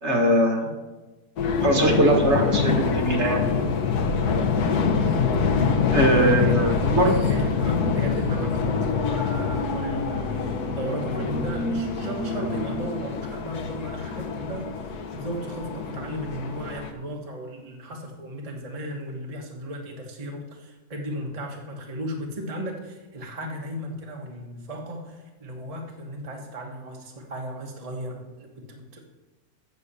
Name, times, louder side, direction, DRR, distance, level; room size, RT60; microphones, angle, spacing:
voice 1, 0.0-0.7 1.6-3.5 5.9-7.1, right 1 dB, 50° right, 1 dB, 1.8 m, -21 dB
sound 1, 1.4-16.9, left 5 dB, 90° left, 1.5 m, -25 dB
sound 2, 4.3-9.0, left 5 dB, 50° left, 0.9 m, -37 dB
voice 2, 6.3-6.7 7.2-29.0, equal, 25° right, 0 dB, 1.1 m, -35 dB
8.1 x 7.0 x 6.8 m, 1.1 s
omnidirectional pair, 1.6 m